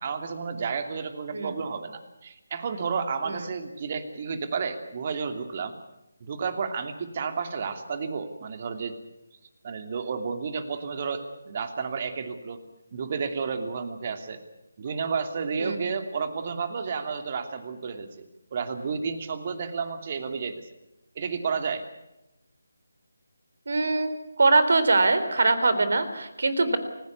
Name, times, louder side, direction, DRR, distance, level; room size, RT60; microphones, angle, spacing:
voice 1, 0.0-5.7 6.2-8.9 9.6-12.6 12.9-14.4 14.8-18.2 18.5-20.7 21.1-21.8, right 5 dB, 35° right, 8 dB, 2.8 m, -31 dB
voice 2, 23.7-24.1 24.4-26.8, right 3 dB, 55° right, 11 dB, 3.8 m, -22 dB
29.5 x 16.5 x 8.4 m, 0.92 s
figure-of-eight pair, 155°, 0 cm